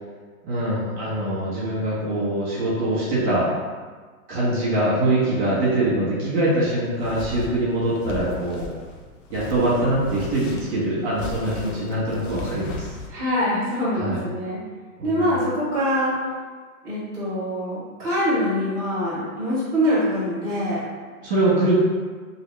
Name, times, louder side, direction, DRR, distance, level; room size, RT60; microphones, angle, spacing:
voice 1, 0.4-3.5 4.3-8.7 9.3-12.9 13.9-14.2 15.0-15.3 21.2-21.7, right 1 dB, 50° right, -7 dB, 1.4 m, -23 dB
sound 1, 6.4-13.1, left 3 dB, 60° left, 0.6 m, -36 dB
voice 2, 13.1-14.6 15.0-16.1 16.8-20.8, equal, 10° right, -16 dB, 1.0 m, -24 dB
2.9 x 2.8 x 3.3 m, 1.5 s
hypercardioid pair, 165°, 43 cm